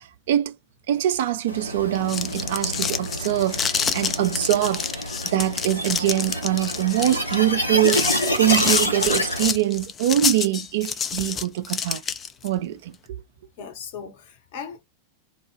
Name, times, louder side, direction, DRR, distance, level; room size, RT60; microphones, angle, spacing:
voice 1, 0.9-4.9 5.2-12.0 12.4-13.0, right 13 dB, 55° right, 0.3 m, -23 dB
sound 1, 1.5-9.5, equal, 90° left, 0.6 m, -28 dB
sound 2, 1.9-12.5, left 7 dB, 25° left, 0.3 m, -27 dB
voice 2, 13.6-14.8, left 7 dB, 50° left, 0.8 m, -38 dB
2.2 x 2.1 x 3.2 m
figure-of-eight pair, 90°, 0 cm